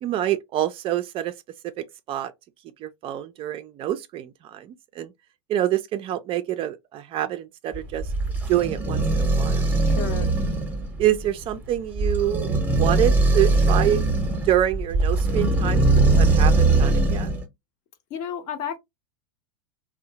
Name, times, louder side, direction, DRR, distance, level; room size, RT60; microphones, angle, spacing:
voice 1, 0.0-1.3 1.6-2.3 2.8-5.1 5.5-8.1 8.5-9.7 11.0-14.0 14.4-17.3, right 12 dB, 35° right, 0.3 m, -26 dB
sound 1, 7.7-17.4, right 2 dB, 10° right, 0.7 m, -21 dB
voice 2, 9.8-10.3 18.1-18.8, left 8 dB, 50° left, 0.7 m, -31 dB
2.6 x 2.0 x 2.7 m
hypercardioid pair, 105°, 16 cm